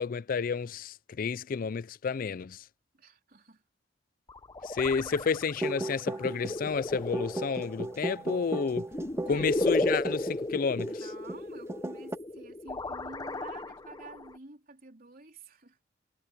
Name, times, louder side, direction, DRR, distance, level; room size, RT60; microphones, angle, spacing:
voice 1, 0.0-2.6 4.6-8.9 9.3-11.1, left 5 dB, 50° left, 0.4 m, -31 dB
voice 2, 3.0-3.6 9.3-9.6 10.8-15.8, right 3 dB, 50° right, 3.7 m, -50 dB
sound 1, 4.3-14.4, left 2 dB, 20° left, 0.7 m, -35 dB
sound 2, 5.6-11.0 11.3-11.4 11.7-12.2, right 1 dB, 15° right, 0.6 m, -36 dB
head